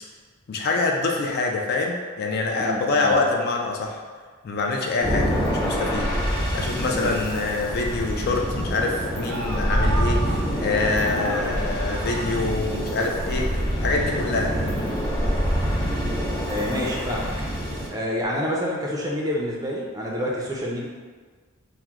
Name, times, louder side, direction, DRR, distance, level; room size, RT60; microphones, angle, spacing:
voice 1, 0.5-4.0 4.4-6.1 6.5-14.6, left 3 dB, 50° left, 0 dB, 0.4 m, -25 dB
voice 2, 2.6-3.2 6.9-7.1 16.5-17.3 17.9-20.9, equal, 15° right, -3 dB, 0.4 m, -28 dB
sound 1, 5.0-17.9, equal, 10° left, 1.1 m, -26 dB
sound 2, 9.2-11.7 12.0-13.3 13.8-14.8, right 2 dB, 85° right, 0.4 m, -35 dB
2.9 x 2.1 x 3.5 m, 1.5 s
head